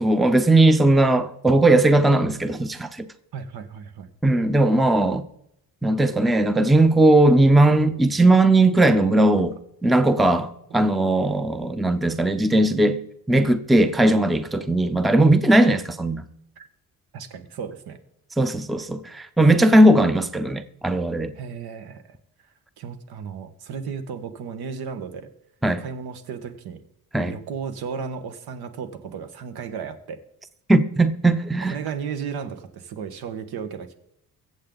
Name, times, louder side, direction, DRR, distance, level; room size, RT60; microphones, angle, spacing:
voice 1, 0.0-3.1 4.2-5.2 5.8-9.6 9.8-13.0 13.3-16.2 18.4-21.3 25.6-25.8 27.1-27.3 30.7-31.8, right 2 dB, ahead, 0.5 m, -18 dB
voice 2, 3.3-4.1 9.4-9.5 10.3-10.4 15.7-15.8 16.6-16.7 17.1-18.0 21.4-22.2 22.8-25.2 25.8-26.8 27.2-30.2 31.6-33.9, right 6 dB, 80° right, 1.7 m, -34 dB
23.0 x 7.7 x 4.0 m
cardioid pair, 140°, 37 cm